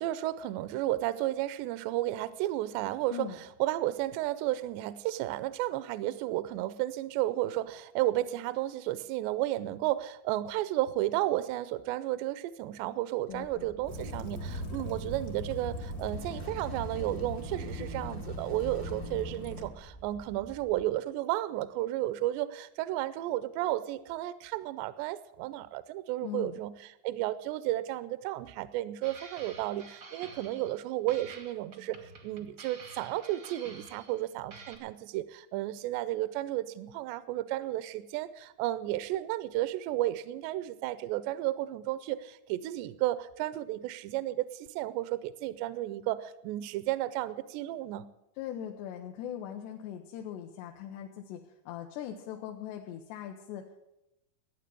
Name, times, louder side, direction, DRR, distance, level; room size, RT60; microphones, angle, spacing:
voice 1, 0.0-26.7 27.0-48.0, right 15 dB, 80° right, 15 dB, 2.7 m, -33 dB
voice 2, 13.3-13.8 26.2-26.6 48.4-53.8, left 10 dB, 75° left, 2 dB, 3.0 m, -40 dB
sound 1, 13.3-20.9, right 1 dB, 20° left, 0.5 m, -52 dB
Waves surf / Splash splatter / Trickle dribble, 13.9-19.7, equal, 55° left, 1.1 m, -39 dB
sound 2, 29.0-30.8 31.1-34.2 34.5-34.8, right 3 dB, 60° right, 1.0 m, -50 dB
14.5 x 9.0 x 8.5 m, 0.90 s
omnidirectional pair, 5.1 m